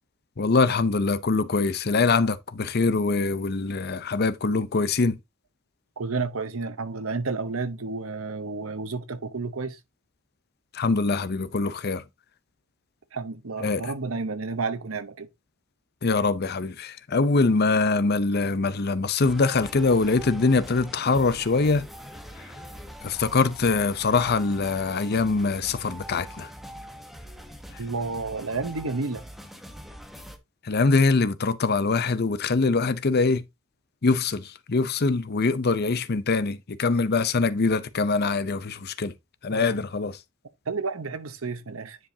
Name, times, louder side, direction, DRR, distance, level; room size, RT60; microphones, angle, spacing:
voice 1, 0.4-5.2 10.7-12.0 13.6-13.9 16.0-21.8 22.4-22.5 23.0-26.5 30.6-33.4 34.0-39.1 39.4-40.2, left 3 dB, 50° left, 0.6 m, -23 dB
voice 2, 6.0-9.8 13.1-15.3 27.8-29.2 39.5-39.7 40.7-42.0, right 4 dB, 75° right, 0.9 m, -31 dB
sound 1, 19.2-30.4, equal, ahead, 0.9 m, -43 dB
9.9 x 5.0 x 2.8 m
head